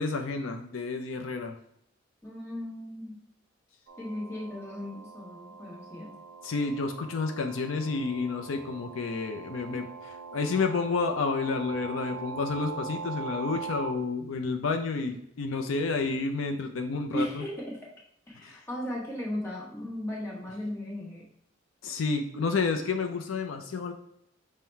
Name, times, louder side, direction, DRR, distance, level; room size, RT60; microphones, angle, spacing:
voice 1, 0.0-1.6 6.4-17.5 18.4-18.6 21.8-23.9, left 4 dB, 75° left, 5 dB, 0.4 m, -30 dB
voice 2, 2.2-3.2 4.0-6.2 17.1-17.9 18.3-21.3, left 1 dB, 15° left, -4 dB, 1.0 m, -36 dB
sound 1, 3.9-14.0, right 5 dB, 75° right, 0.4 m, -42 dB
5.5 x 2.1 x 4.4 m, 0.75 s
head